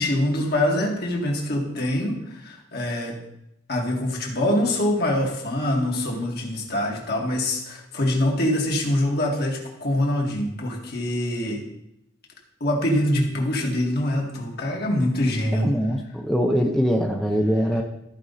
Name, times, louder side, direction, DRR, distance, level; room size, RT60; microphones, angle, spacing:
voice 1, 0.0-3.2 3.7-11.6 12.6-15.7 16.6-16.7, left 1 dB, 60° left, -1 dB, 2.1 m, -24 dB
voice 2, 15.6-17.8, equal, ahead, 1 dB, 0.6 m, -22 dB
14.0 x 5.2 x 4.1 m, 0.81 s
head